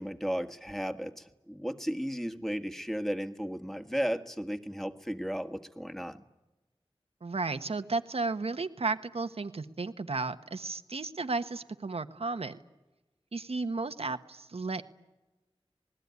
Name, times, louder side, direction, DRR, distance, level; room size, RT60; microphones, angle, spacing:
voice 1, 0.0-6.2, equal, 5° left, 7 dB, 1.8 m, -34 dB
voice 2, 7.2-12.6 13.3-14.8, right 3 dB, 80° right, 9 dB, 1.4 m, -33 dB
27.5 x 20.0 x 9.7 m, 1.1 s
wide cardioid pair, 60°, 10 cm